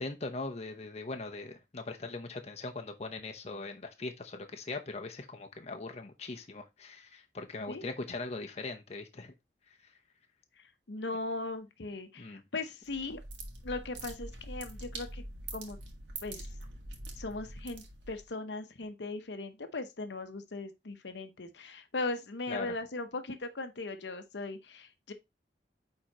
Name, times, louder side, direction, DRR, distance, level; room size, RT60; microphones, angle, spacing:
voice 1, 0.0-9.3 12.2-12.4 22.5-22.7, left 3 dB, 35° left, 0.8 m, -40 dB
voice 2, 10.9-13.2 13.6-15.2 15.5-15.8 16.2-16.4 17.2-25.1, left 3 dB, 80° left, 0.9 m, -38 dB
sound 1, 12.8-18.3, right 2 dB, 90° right, 1.7 m, -44 dB
8.9 x 3.8 x 2.9 m
head